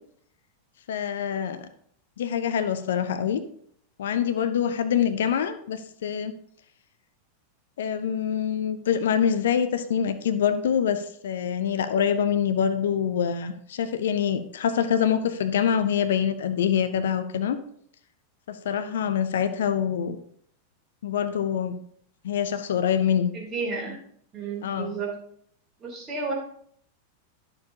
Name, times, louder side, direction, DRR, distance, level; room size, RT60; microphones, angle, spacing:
voice 1, 0.9-1.7 2.2-3.4 4.0-6.3 7.8-17.6 18.5-20.2 21.0-21.8 22.2-23.3 24.6-24.9, left 8 dB, 60° left, 11 dB, 0.5 m, -25 dB
voice 2, 23.3-23.9 24.3-25.1 25.8-26.3, right 4 dB, 25° right, -2 dB, 3.1 m, -31 dB
11.5 x 6.9 x 2.8 m, 0.64 s
figure-of-eight pair, 90°, 0 cm